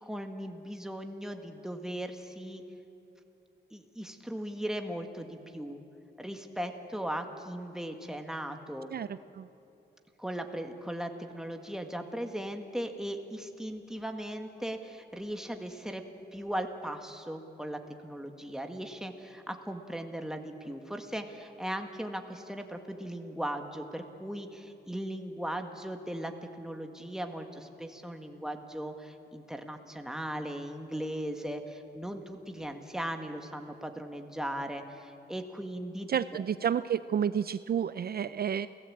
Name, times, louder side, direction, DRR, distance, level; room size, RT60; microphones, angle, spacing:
voice 1, 0.0-2.6 3.7-5.8 6.2-8.9 10.2-16.0 16.3-36.4, right 1 dB, 5° right, 5 dB, 1.8 m, -38 dB
voice 2, 36.1-38.7, right 8 dB, 55° right, 14 dB, 0.5 m, -30 dB
28.5 x 17.0 x 8.7 m, 2.9 s
wide cardioid pair, 125°, 19 cm